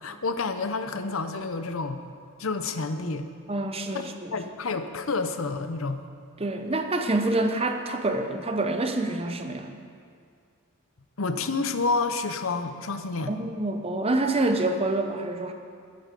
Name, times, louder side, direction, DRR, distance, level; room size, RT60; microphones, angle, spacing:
voice 1, 0.0-2.0 2.4-3.3 3.9-4.0 4.3-6.0 11.2-13.3, left 3 dB, 60° left, 9 dB, 0.7 m, -29 dB
voice 2, 3.5-4.4 6.4-9.8 13.3-15.5, right 2 dB, 25° right, 6 dB, 0.8 m, -27 dB
13.5 x 11.5 x 5.3 m, 2.2 s
head